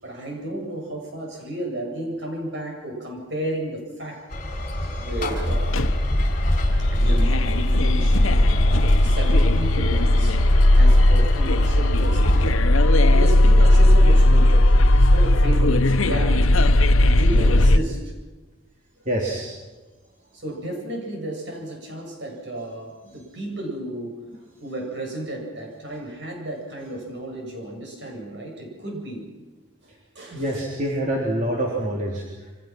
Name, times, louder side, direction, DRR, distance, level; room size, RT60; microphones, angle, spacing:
voice 1, 0.0-4.2 5.0-5.9 6.9-10.4 10.7-12.7 13.1-16.6 17.0-18.1 20.3-24.2 24.6-29.3 29.8-30.6, right 1 dB, 60° right, 1 dB, 7.7 m, -33 dB
sound 1, 4.3-12.5, left 1 dB, 40° left, 3.5 m, -26 dB
voice 2, 4.6-5.1 13.0-13.1 17.3-17.5 19.0-19.5 30.3-32.5, right 1 dB, 40° right, -3 dB, 3.7 m, -27 dB
sound 2, 5.5-17.8, left 1 dB, 90° left, 1.0 m, -17 dB
29.0 x 25.5 x 6.2 m, 1.2 s
head